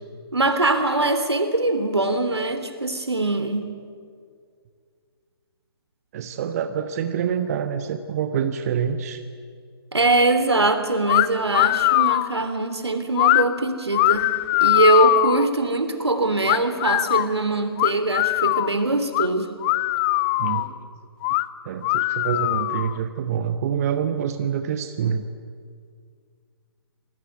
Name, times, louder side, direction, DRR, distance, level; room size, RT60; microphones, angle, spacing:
voice 1, 0.3-3.7 9.9-14.3 14.6-19.5, right 2 dB, 80° right, 9 dB, 3.4 m, -22 dB
voice 2, 6.1-9.2 20.4-20.8 21.6-25.2, right 8 dB, 35° right, 8 dB, 1.2 m, -26 dB
sound 1, 11.1-11.3 11.5-12.3 13.2-13.4 13.9-15.5 16.5-17.3 17.8-18.7 19.1-19.3 19.6-20.7 21.2-21.5 21.8-22.9, left 20 dB, 20° left, 0.6 m, -21 dB
27.5 x 19.0 x 9.4 m, 2.1 s
figure-of-eight pair, 135°, 14 cm